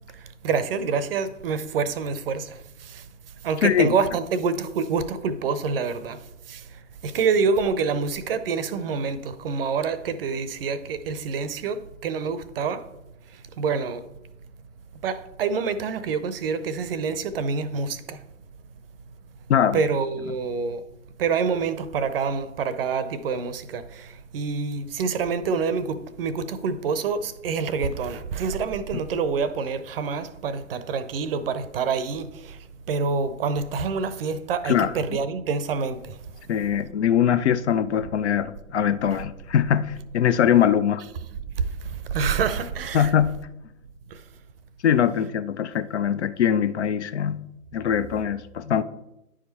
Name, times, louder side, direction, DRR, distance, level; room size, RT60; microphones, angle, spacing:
voice 1, 0.1-3.0 3.4-6.2 6.5-12.8 13.3-14.0 15.0-18.2 19.7-20.8 21.2-32.6 32.9-36.2 39.1-39.2 41.5-43.1 44.1-44.2, right 5 dB, 45° right, 0.7 m, -27 dB
voice 2, 3.6-3.9 19.5-19.8 28.9-29.0 34.6-34.9 36.5-41.0 42.9-43.4 44.8-47.4 47.7-48.8, left 9 dB, 55° left, 0.5 m, -22 dB
10.0 x 5.0 x 4.1 m
figure-of-eight pair, 120°, 42 cm